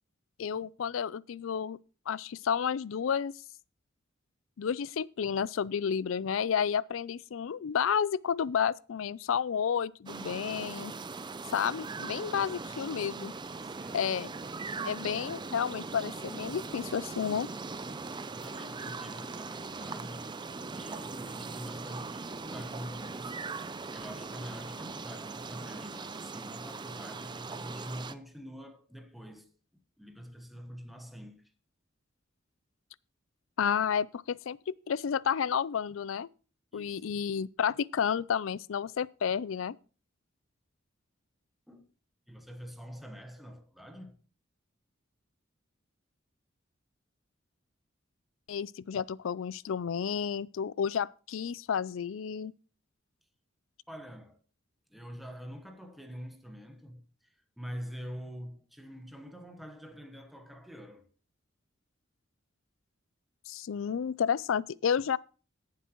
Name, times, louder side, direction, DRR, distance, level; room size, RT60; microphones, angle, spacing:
voice 1, 0.4-1.8 2.1-3.3 4.6-10.9 11.5-13.3 13.9-14.3 14.8-17.5 33.6-36.3 36.7-39.8 48.5-52.5 63.5-65.2, left 7 dB, 85° left, 0.4 m, -31 dB
sound 1, 10.1-28.1, right 4 dB, 25° right, 0.5 m, -40 dB
voice 2, 13.6-14.0 18.3-20.3 20.7-23.4 23.9-29.5 30.0-31.4 36.7-37.2 41.7-41.9 42.3-44.1 53.9-54.4 54.9-61.1, equal, ahead, 1.1 m, -45 dB
17.5 x 7.6 x 3.0 m
head